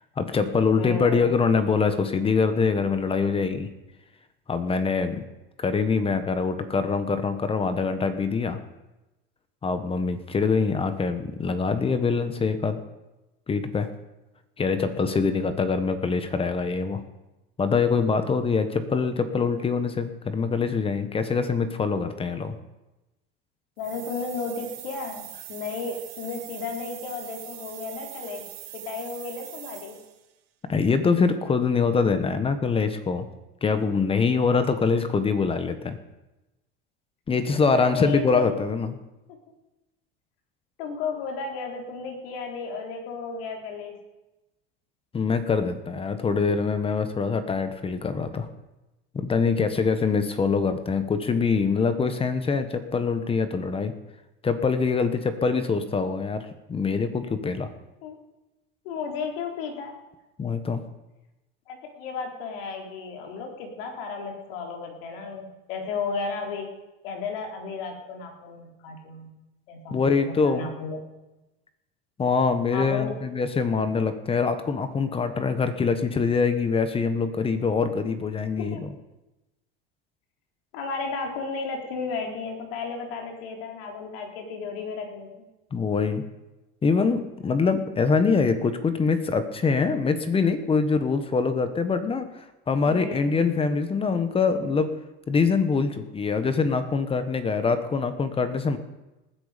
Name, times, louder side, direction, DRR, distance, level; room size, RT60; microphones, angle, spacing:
voice 1, 0.2-3.7 4.5-5.2 5.6-8.6 9.6-12.8 13.5-13.9 14.6-17.0 17.6-22.6 30.7-33.3 33.6-36.0 37.3-39.0 45.1-48.5 49.1-53.9 54.4-57.7 60.4-60.8 69.9-70.7 72.2-78.9 85.7-86.2 86.8-92.3 92.7-94.9 95.3-98.8, left 5 dB, 20° left, 10 dB, 1.2 m, -24 dB
voice 2, 0.8-1.3 23.8-28.4 28.7-30.0 37.7-38.5 40.8-44.0 58.0-58.2 58.8-59.9 61.7-66.7 67.0-69.3 69.7-71.0 72.7-73.2 78.6-78.8 80.7-85.3 92.9-93.4, left 4 dB, 80° left, 2 dB, 4.0 m, -34 dB
sound 1, 23.8-30.2, right 15 dB, 75° right, 2.6 m, -42 dB
19.5 x 11.0 x 5.2 m, 1.0 s
supercardioid pair, 135°, 29 cm